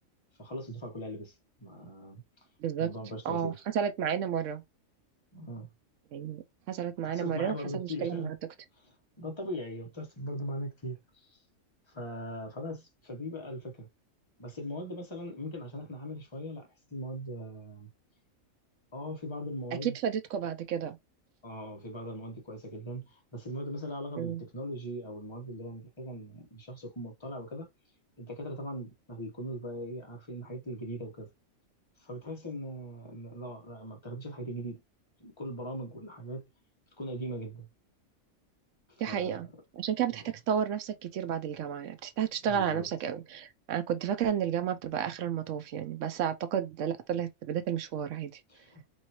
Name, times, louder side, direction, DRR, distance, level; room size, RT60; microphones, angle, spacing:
voice 1, 0.4-1.3 1.6-2.2 2.8-3.6 5.3-5.7 7.0-8.3 9.2-11.0 11.9-13.9 14.4-17.9 18.9-20.0 21.4-27.7 28.2-31.3 32.0-34.8 35.2-36.4 37.0-37.7 39.0-39.4 40.2-40.3 42.4-42.9 48.5-48.9, equal, 25° left, 0.8 m, -40 dB
voice 2, 2.6-2.9 3.3-4.6 6.1-8.4 19.8-21.0 24.2-24.4 39.0-48.4, right 8 dB, 70° right, 0.8 m, -32 dB
3.0 x 2.6 x 2.8 m
omnidirectional pair, 1.5 m